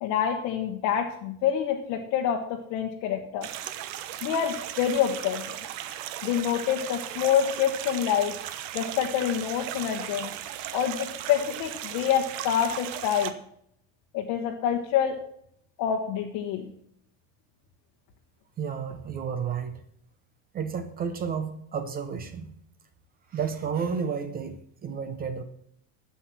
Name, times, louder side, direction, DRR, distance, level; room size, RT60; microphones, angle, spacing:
voice 1, 0.0-3.5 4.2-5.4 6.2-8.4 8.7-10.3 10.7-13.3 14.1-15.2 15.8-16.7, left 9 dB, 45° left, 1 dB, 1.2 m, -27 dB
sound 1, 3.4-13.3, right 11 dB, 60° right, 1.1 m, -37 dB
voice 2, 18.6-19.8 20.5-22.5 23.3-25.4, right 6 dB, 20° right, 10 dB, 0.7 m, -31 dB
12.0 x 7.9 x 6.0 m, 0.71 s
cardioid pair, 175°, 44 cm